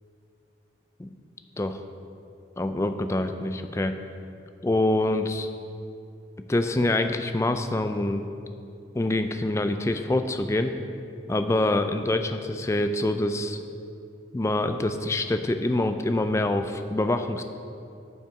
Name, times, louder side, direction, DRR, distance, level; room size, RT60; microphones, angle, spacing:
voice 1, 2.6-3.9 4.6-5.5 6.5-8.2 8.9-10.7 11.3-13.6 14.3-17.4, left 1 dB, 15° left, 8 dB, 0.3 m, -25 dB
13.5 x 5.5 x 3.6 m, 2.6 s
head